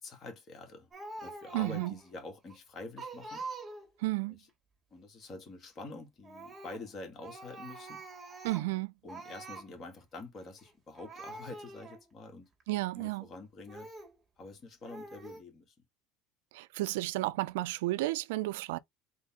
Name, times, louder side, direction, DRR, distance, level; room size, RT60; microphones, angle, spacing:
voice 1, 0.0-0.9 1.2-3.5 4.3-4.5 4.9-8.0 9.0-12.5 13.0-13.9 14.4-15.7, left 3 dB, 40° left, 2.2 m, -47 dB
Speech, 0.9-2.1 2.5-2.6 3.0-4.0 6.2-6.9 7.2-8.8 9.1-9.7 10.6-10.7 10.9-12.0 12.6-12.7 13.7-14.1 14.8-15.4, right 3 dB, 20° right, 2.1 m, -45 dB
voice 2, 1.5-1.9 4.0-4.4 8.4-8.9 12.7-13.2 16.5-18.8, right 19 dB, 85° right, 0.4 m, -32 dB
3.9 x 3.7 x 3.7 m
supercardioid pair, 105°, 0 cm